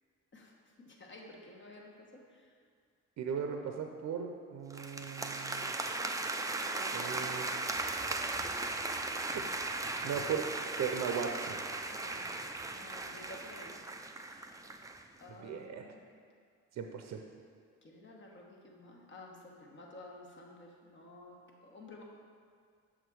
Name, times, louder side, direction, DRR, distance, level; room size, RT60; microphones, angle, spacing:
voice 1, 0.8-2.5 6.7-7.2 8.9-9.3 11.9-13.8 14.6-14.7 15.2-16.0 17.8-22.0, left 2 dB, 40° left, -1 dB, 1.3 m, -53 dB
voice 2, 3.2-5.7 6.9-7.6 10.0-10.5 10.8-11.6 15.4-15.8 16.8-17.2, right 7 dB, 60° right, 4 dB, 0.6 m, -37 dB
sound 1, 4.7-15.0, right 2 dB, 10° right, 0.4 m, -37 dB
6.9 x 3.6 x 6.2 m, 2.1 s
cardioid pair, 90°, 30 cm